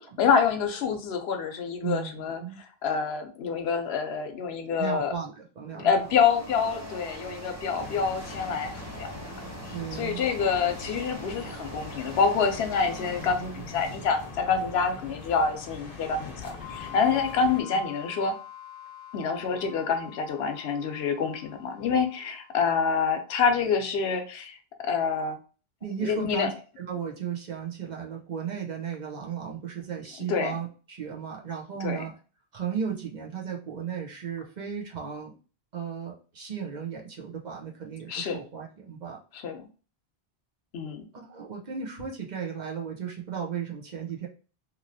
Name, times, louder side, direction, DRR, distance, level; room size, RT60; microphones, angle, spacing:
voice 1, 0.2-5.1 5.7-8.7 9.0-9.1 9.7-18.3 19.1-25.4 26.0-26.5 30.3-30.6 31.8-32.0 38.1-38.4 39.3-39.6 40.7-41.0, left 6 dB, 85° left, 6 dB, 0.9 m, -27 dB
voice 2, 1.8-2.6 4.8-5.9 9.7-10.4 17.7-17.8 25.8-26.5 26.8-32.1 32.5-35.3 35.7-39.2 41.1-44.3, right 7 dB, 50° right, -1 dB, 0.8 m, -35 dB
sound 1, 5.8-15.0, right 2 dB, 20° right, 0.6 m, -43 dB
sound 2, 7.8-17.6, left 5 dB, 60° left, 1.0 m, -43 dB
sound 3, 16.6-23.1, left 11 dB, 25° left, 0.5 m, -46 dB
3.0 x 2.7 x 2.6 m, 0.37 s
omnidirectional pair, 1.0 m